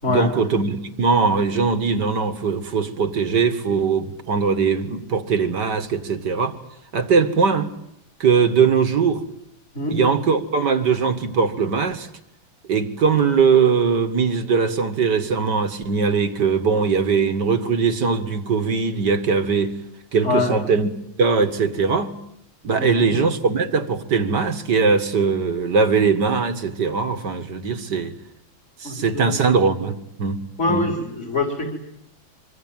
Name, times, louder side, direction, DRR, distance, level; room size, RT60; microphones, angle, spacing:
voice 1, 0.1-6.6 6.9-7.7 8.2-9.2 9.9-12.1 12.7-19.8 20.1-20.9 21.2-22.2 22.6-28.1 28.8-30.4 30.7-30.9, right 5 dB, 60° right, 2.3 m, -20 dB
voice 2, 20.2-20.5 22.8-23.1 28.8-29.5 30.6-31.7, left 2 dB, 35° left, 4.8 m, -24 dB
25.0 x 25.0 x 9.1 m
omnidirectional pair, 2.2 m